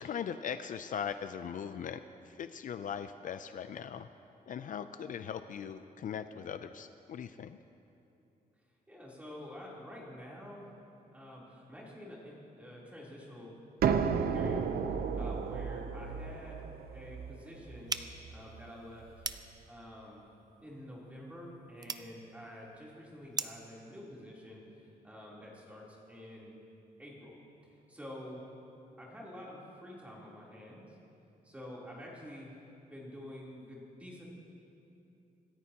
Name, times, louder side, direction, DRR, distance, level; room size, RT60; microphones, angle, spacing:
voice 1, 0.0-2.0 2.3-4.1 4.5-7.6, left 8 dB, 60° left, 10 dB, 0.4 m, -39 dB
voice 2, 8.9-10.7 11.1-13.5 14.3-14.6 15.1-17.9 18.3-19.1 19.7-20.2 20.6-26.6 27.0-27.4 27.9-28.4 29.0-30.9 31.4-32.5 32.9-34.3, left 1 dB, 10° right, -5 dB, 3.3 m, -48 dB
sound 1, 13.8-19.4, right 6 dB, 75° right, 0.7 m, -34 dB
sound 2, 17.9-23.7, right 5 dB, 25° right, 0.5 m, -43 dB
26.5 x 14.0 x 2.9 m, 2.8 s
wide cardioid pair, 150°, 16 cm